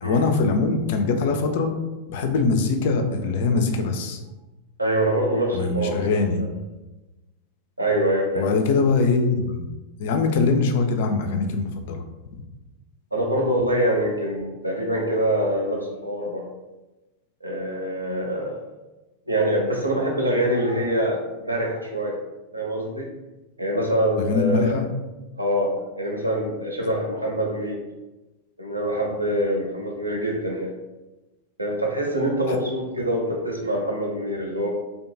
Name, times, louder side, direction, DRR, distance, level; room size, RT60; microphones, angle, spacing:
voice 1, 0.0-1.7 2.1-4.2 5.5-6.4 8.4-9.6 10.0-12.0 24.3-24.8 32.5-32.6, left 4 dB, 50° left, 5 dB, 0.3 m, -22 dB
voice 2, 4.8-6.5 7.8-8.5 13.1-16.5 17.4-18.6 19.3-22.2 22.5-23.1 23.6-24.8 25.4-27.8 28.6-30.7 31.6-34.7, right 1 dB, 85° right, -1 dB, 0.5 m, -25 dB
2.6 x 2.2 x 2.5 m, 1.1 s
figure-of-eight pair, 90°, 0 cm